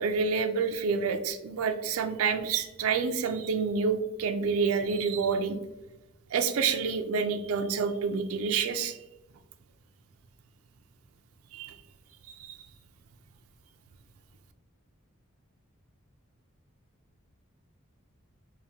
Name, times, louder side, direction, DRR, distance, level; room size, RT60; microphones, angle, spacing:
voice 1, 0.0-5.6 6.3-9.0 11.5-11.7 12.3-12.6, right 5 dB, 80° right, 7 dB, 0.4 m, -28 dB
4.9 x 2.6 x 2.8 m, 1.0 s
head